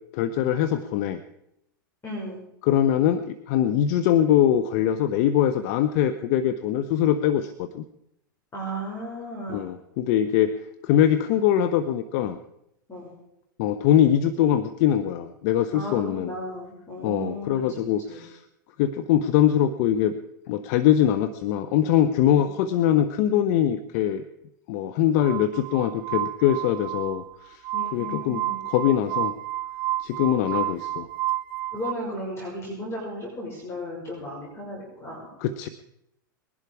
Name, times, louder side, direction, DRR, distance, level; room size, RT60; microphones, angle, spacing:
voice 1, 0.1-1.2 2.6-7.8 9.5-10.5 10.8-12.4 13.6-16.3 17.0-18.4 18.8-20.1 20.5-24.2 24.7-27.6 27.9-29.3 30.0-31.1 35.4-35.7, left 10 dB, 55° left, 10 dB, 0.9 m, -22 dB
voice 2, 2.0-2.4 8.5-9.7 12.9-13.1 15.7-17.6 18.1-18.2 22.3-22.5 27.7-28.6 31.7-35.3, equal, 25° left, -3 dB, 5.9 m, -35 dB
Glass, 25.2-31.9, right 14 dB, 50° right, 0.6 m, -31 dB
21.0 x 11.0 x 4.8 m, 0.81 s
hypercardioid pair, 100°, 11 cm